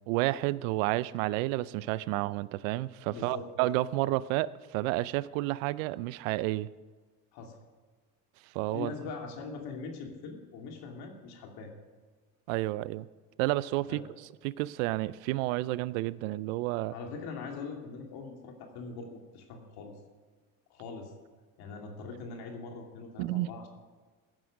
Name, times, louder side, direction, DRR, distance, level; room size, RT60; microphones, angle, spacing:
voice 1, 0.1-6.7 8.5-8.9 12.5-13.1 13.4-14.0 14.4-16.9 23.2-23.5, right 17 dB, 85° right, 20 dB, 0.6 m, -30 dB
voice 2, 3.1-3.5 7.3-7.6 8.7-11.7 13.9-14.0 16.9-19.9 20.7-21.1 21.6-23.7, left 4 dB, 70° left, 2 dB, 2.6 m, -42 dB
15.5 x 10.0 x 5.3 m, 1.4 s
supercardioid pair, 75°, 39 cm